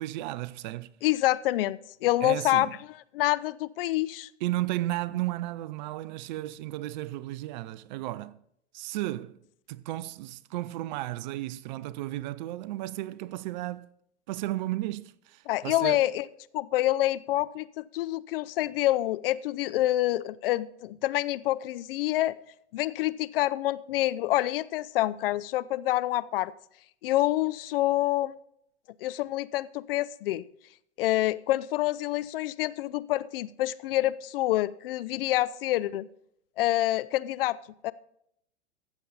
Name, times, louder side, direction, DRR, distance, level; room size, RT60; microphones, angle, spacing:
voice 1, 0.0-0.9 2.2-2.7 4.4-8.4 8.7-9.4 9.7-13.9 14.3-16.0, right 16 dB, 40° right, 0.4 m, -34 dB
voice 2, 1.0-2.8 3.1-4.3 15.5-16.3 16.5-22.4 22.7-26.5 27.0-28.3 29.0-30.5 31.0-36.1 36.6-37.6 37.8-37.9, left 15 dB, 50° left, 0.5 m, -27 dB
14.5 x 7.1 x 3.9 m
hypercardioid pair, 110°, 36 cm